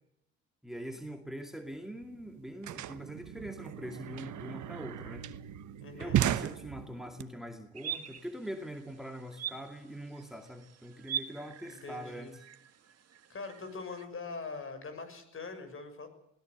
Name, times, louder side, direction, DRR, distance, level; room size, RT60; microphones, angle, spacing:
voice 1, 0.6-5.3 5.9-12.4, equal, ahead, 5 dB, 2.4 m, -43 dB
sound 1, 1.7-1.8 2.0-7.2, right 12 dB, 75° right, 1.2 m, -35 dB
voice 2, 5.8-6.2 11.6-12.3 13.3-16.1, left 4 dB, 45° left, 8 dB, 6.7 m, -42 dB
sound 2, 7.8-14.1, right 8 dB, 55° right, 1.8 m, -43 dB
20.5 x 18.0 x 8.1 m, 0.76 s
cardioid pair, 90°, 30 cm